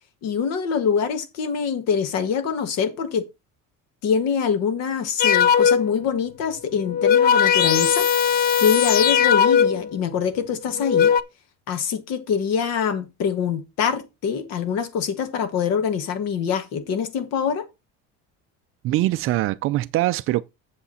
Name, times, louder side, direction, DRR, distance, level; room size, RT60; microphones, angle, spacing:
voice 1, 0.2-3.3 4.0-11.1 11.7-17.7, left 7 dB, 55° left, 1.5 m, -24 dB
Itchy Ass Crack, 5.2-6.0 6.8-9.9 10.7-11.2, left 8 dB, 30° left, 0.5 m, -18 dB
voice 2, 18.8-20.4, right 16 dB, 45° right, 0.4 m, -22 dB
8.1 x 7.3 x 4.2 m
cardioid pair, 165°, 31 cm